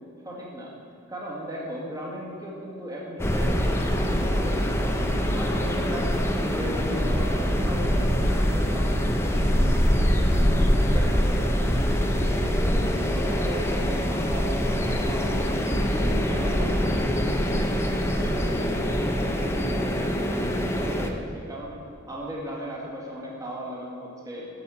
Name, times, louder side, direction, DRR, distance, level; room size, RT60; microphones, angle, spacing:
voice 1, 0.2-0.7 1.1-4.9 5.3-10.6 10.9-11.7 12.1-15.4 15.8-21.8 22.1-24.5, equal, 15° right, -4 dB, 1.8 m, -37 dB
sound 1, 3.2-21.1, equal, 15° left, 0.6 m, -24 dB
8.6 x 5.6 x 7.6 m, 2.8 s
head